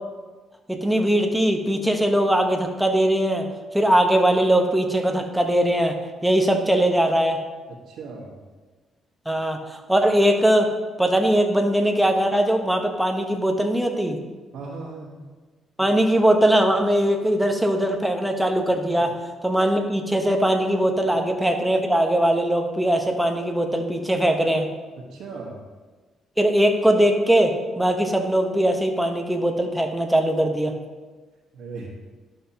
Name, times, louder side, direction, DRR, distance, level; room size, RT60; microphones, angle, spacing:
voice 1, 0.7-3.5 3.7-6.0 6.2-7.4 9.3-14.2 15.8-19.2 19.4-24.7 26.4-30.8, right 1 dB, 5° right, 4 dB, 1.0 m, -20 dB
voice 2, 7.7-8.4 14.5-15.2 19.0-19.1 25.0-25.6 31.5-31.9, right 4 dB, 80° right, -5 dB, 1.4 m, -37 dB
12.0 x 5.8 x 2.9 m, 1.3 s
cardioid pair, 90°, 0 cm